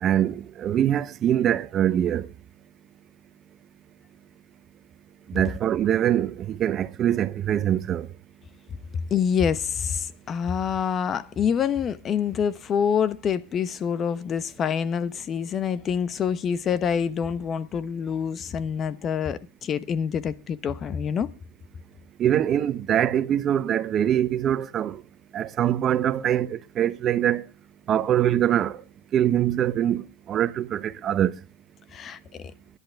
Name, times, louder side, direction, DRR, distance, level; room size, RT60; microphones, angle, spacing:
voice 1, 0.0-2.3 5.3-8.1 22.2-25.0 25.3-27.4 27.9-28.8 29.1-31.4, right 10 dB, 40° right, 1.0 m, -23 dB
voice 2, 9.1-21.3 31.9-32.5, left 7 dB, 35° left, 1.1 m, -26 dB
21.5 x 11.0 x 3.5 m
supercardioid pair, 100°, 0 cm